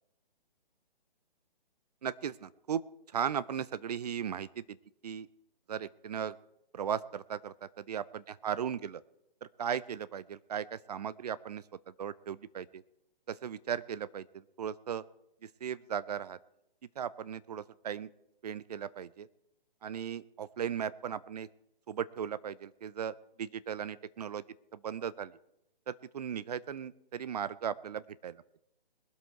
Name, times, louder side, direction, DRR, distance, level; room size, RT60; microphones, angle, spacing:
voice 1, 2.0-2.8 3.1-4.6 5.0-5.3 5.7-6.4 6.7-9.0 9.4-11.6 12.0-12.8 13.3-15.0 15.4-16.4 17.0-18.1 18.4-19.3 19.8-21.5 21.9-24.4 24.7-25.4 25.9-28.4, right 8 dB, 45° right, 17 dB, 0.5 m, -37 dB
21.5 x 7.9 x 4.5 m, 0.84 s
figure-of-eight pair, 145°, 29 cm